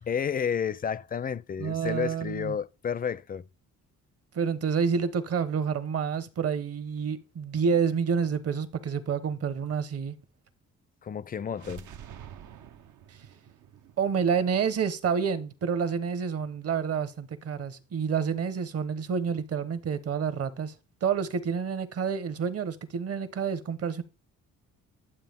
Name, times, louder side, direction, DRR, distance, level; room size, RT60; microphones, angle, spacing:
voice 1, 0.0-3.5 11.0-11.9, left 7 dB, 30° left, 0.5 m, -31 dB
voice 2, 1.6-2.6 4.3-10.2 13.1-13.2 14.0-20.7 21.0-24.0, right 6 dB, 50° right, 1.1 m, -28 dB
sound 1, 11.5-15.4, right 9 dB, 75° right, 0.9 m, -48 dB
11.0 x 7.4 x 3.6 m
cardioid pair, 90°, 30 cm